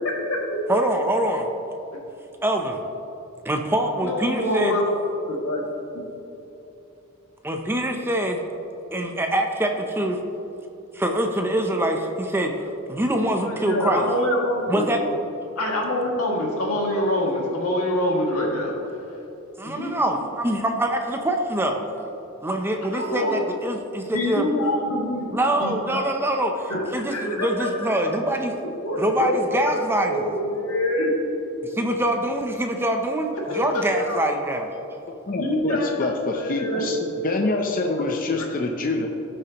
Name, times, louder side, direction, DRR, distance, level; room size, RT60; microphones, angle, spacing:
voice 1, 0.0-0.6 4.0-5.6 5.9-6.0 13.4-14.9 15.5-18.7 19.6-19.9 22.9-23.4 24.1-25.3 25.6-26.0 26.7-27.7 28.8-31.1 33.5-34.3 35.3-35.9 36.3-36.9 38.4-38.5, left 1 dB, 90° left, -2 dB, 2.1 m, -25 dB
voice 2, 0.7-1.5 2.4-2.8 3.4-4.8 7.4-8.4 8.9-10.2 10.9-14.1 14.7-15.0 19.6-21.8 22.4-24.5 25.3-28.5 29.0-30.3 31.6-34.7, right 1 dB, 10° right, 3 dB, 0.6 m, -24 dB
voice 3, 35.3-37.0 37.2-39.1, left 2 dB, 40° left, 2 dB, 0.6 m, -25 dB
16.5 x 6.7 x 3.0 m, 3.0 s
head